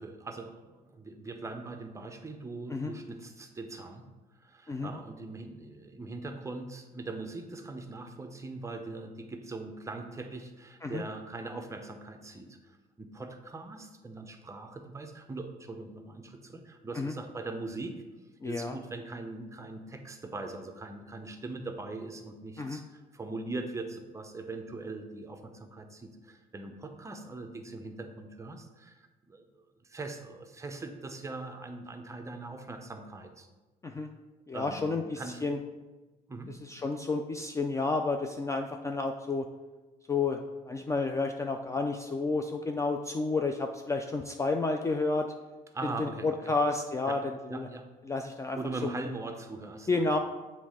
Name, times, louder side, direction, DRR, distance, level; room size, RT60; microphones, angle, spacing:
voice 1, 0.0-4.0 4.4-18.0 18.4-33.5 34.5-35.5 36.3-36.5 45.7-46.5 47.1-47.2 47.5-47.9 48.6-50.1, right 3 dB, 15° right, 5 dB, 0.7 m, -41 dB
voice 2, 18.4-18.8 22.6-22.8 33.8-34.1 34.5-35.6 36.6-39.5 40.1-45.3 45.8-47.7 48.1-48.9 49.9-50.2, left 3 dB, 20° left, 5 dB, 0.3 m, -31 dB
7.2 x 3.1 x 4.9 m, 1.2 s
cardioid pair, 110°, 17 cm